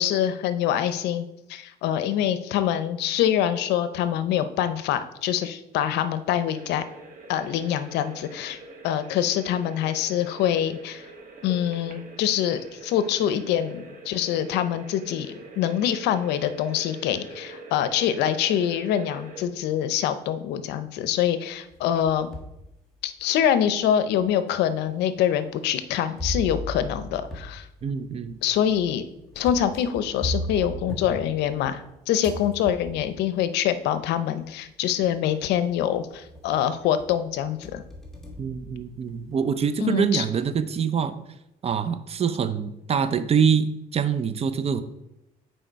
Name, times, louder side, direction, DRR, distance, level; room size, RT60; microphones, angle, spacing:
voice 1, 0.0-6.8 7.3-8.6 8.8-11.1 11.4-22.3 23.0-27.7 28.4-29.0 29.4-37.8 39.8-40.2, left 10 dB, 85° left, 12 dB, 0.6 m, -25 dB
sound 1, 6.5-19.4, right 2 dB, 55° right, 1.6 m, -45 dB
sound 2, 21.7-22.6 23.2-23.3 24.2-24.3 26.2-31.9 32.2-33.2 34.4-34.5 35.0-35.4 35.8-36.6 37.0-39.3, equal, 5° left, 1.5 m, -36 dB
voice 2, 27.8-28.4 38.4-41.2 41.6-44.8, right 7 dB, 35° right, 12 dB, 0.6 m, -25 dB
6.4 x 4.6 x 4.6 m, 0.85 s
cardioid pair, 110°, 17 cm